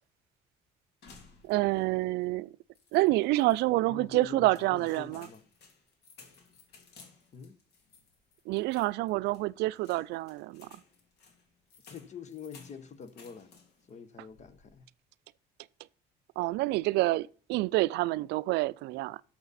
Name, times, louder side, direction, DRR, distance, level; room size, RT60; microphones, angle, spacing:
sound 1, 1.0-1.9 2.2-2.3 2.8-3.6 4.2-13.9 14.3-14.8, left 4 dB, 75° left, 2.9 m, -58 dB
voice 1, 1.4-2.5 2.9-5.3 8.5-10.7 16.4-19.2, right 19 dB, 85° right, 0.4 m, -28 dB
voice 2, 3.9-5.4 7.3-7.6 11.9-13.5 13.9-14.9, left 6 dB, 45° left, 1.1 m, -45 dB
12.0 x 6.8 x 4.1 m
cardioid pair, 110°, 17 cm